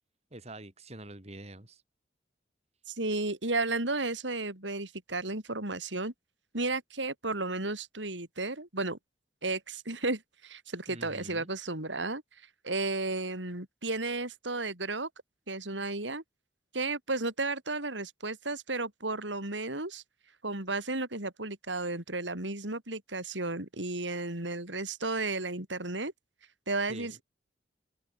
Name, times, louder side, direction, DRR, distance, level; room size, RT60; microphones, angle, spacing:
voice 1, 0.3-1.8 10.9-11.5 26.9-27.2, right 1 dB, 35° right, 3.4 m, -46 dB
voice 2, 2.9-6.1 6.5-9.0 9.4-12.2 12.6-15.1 15.5-16.2 16.7-20.0 20.4-26.1 26.7-27.2, right 2 dB, 85° right, 5.4 m, -33 dB
open air
head